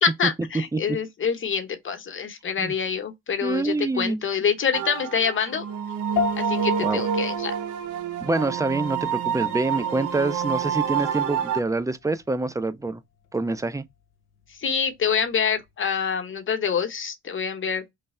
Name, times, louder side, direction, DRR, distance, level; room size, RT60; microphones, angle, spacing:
voice 1, 0.0-5.7 6.4-7.6 14.5-17.9, left 6 dB, 40° left, 0.9 m, -26 dB
voice 2, 3.4-4.2 6.8-7.0 8.2-13.0 13.3-13.8, right 2 dB, 10° right, 0.3 m, -26 dB
sound 1, 4.7-11.6, right 8 dB, 85° right, 0.7 m, -28 dB
sound 2, 6.2-15.7, left 7 dB, 80° left, 0.5 m, -37 dB
3.2 x 2.2 x 4.1 m
cardioid pair, 90°, 30 cm